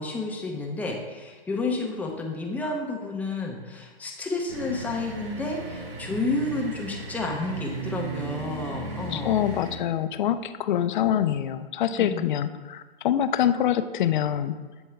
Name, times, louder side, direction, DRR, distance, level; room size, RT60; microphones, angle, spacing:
voice 1, 0.0-9.3 11.9-12.3, left 2 dB, 5° left, 0 dB, 0.5 m, -31 dB
sound 1, 4.5-9.8, right 3 dB, 75° right, 1.6 m, -36 dB
voice 2, 9.1-14.6, left 10 dB, 55° left, 12 dB, 0.4 m, -25 dB
8.0 x 4.4 x 3.2 m, 1.4 s
hypercardioid pair, 130°, 30 cm